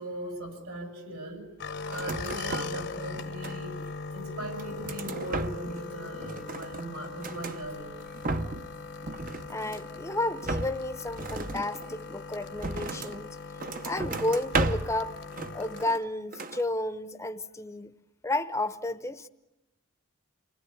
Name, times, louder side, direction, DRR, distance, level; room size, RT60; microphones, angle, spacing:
voice 1, 0.0-1.5 1.9-3.8 4.1-7.9, right 1 dB, 75° right, 7.9 m, -39 dB
sound 1, 1.6-15.9, left 4 dB, 50° left, 1.1 m, -40 dB
sound 2, 1.9-2.8 3.1-3.9 4.4-5.9 6.1-7.6 8.0-8.7 9.0-10.0 10.4-13.2 13.6-15.0 15.3-16.1 16.3-16.6, right 2 dB, 40° right, 0.9 m, -34 dB
voice 2, 9.5-13.3 13.8-15.2 15.5-17.9 18.2-19.3, left 2 dB, 15° left, 0.9 m, -32 dB
28.5 x 20.0 x 9.7 m
head